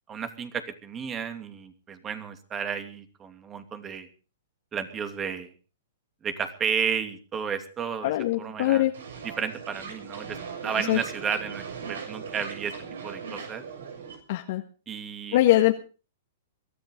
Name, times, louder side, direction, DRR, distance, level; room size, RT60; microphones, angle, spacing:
voice 1, 0.1-4.1 4.7-5.5 6.2-8.1 8.4-8.9 9.2-10.4 10.6-12.7 13.0-13.6 14.9-15.4, right 7 dB, 20° right, 8 dB, 2.8 m, -32 dB
voice 2, 8.0-8.9 10.9-11.0 14.3-14.6 15.3-15.7, left 15 dB, 55° left, 4 dB, 1.7 m, -22 dB
sound 1, 8.9-14.2, right 6 dB, 80° right, 6.9 m, -39 dB
22.5 x 14.0 x 3.8 m, 0.36 s
hypercardioid pair, 130°, 0 cm